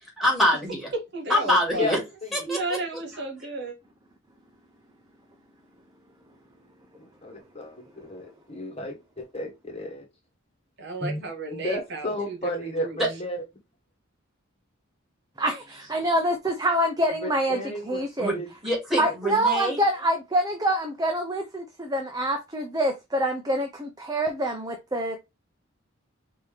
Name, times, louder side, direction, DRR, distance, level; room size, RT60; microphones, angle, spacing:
voice 1, 0.2-0.9 1.3-2.0 2.3-2.6 13.0-13.1 18.2-18.3 18.6-19.8, left 1 dB, ahead, 2.4 m, -24 dB
voice 2, 1.1-1.9 2.4-3.8 10.8-12.4 12.6-13.0, right 3 dB, 55° right, 1.7 m, -33 dB
voice 3, 1.8-2.4 7.0-10.0 11.0-11.2 11.5-13.4 17.2-18.5, left 1 dB, 30° left, 1.4 m, -33 dB
voice 4, 15.4-18.4 19.0-25.2, right 1 dB, 20° right, 0.6 m, -26 dB
5.3 x 2.8 x 3.4 m
head